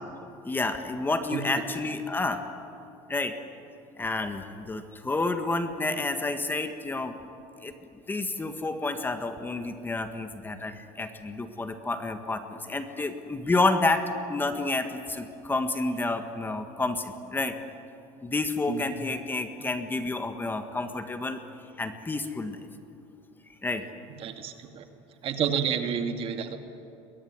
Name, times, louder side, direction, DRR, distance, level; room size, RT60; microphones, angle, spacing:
voice 1, 0.4-2.4 3.1-3.3 4.0-7.1 7.6-17.5 18.2-21.4 21.8-22.6 23.6-23.8, left 3 dB, 15° left, 7 dB, 1.7 m, -29 dB
voice 2, 1.3-1.6 18.7-18.8 24.2-24.9 25.2-26.6, right 7 dB, 45° right, 6 dB, 2.3 m, -30 dB
22.5 x 21.0 x 9.6 m, 2.6 s
supercardioid pair, 120°, 13 cm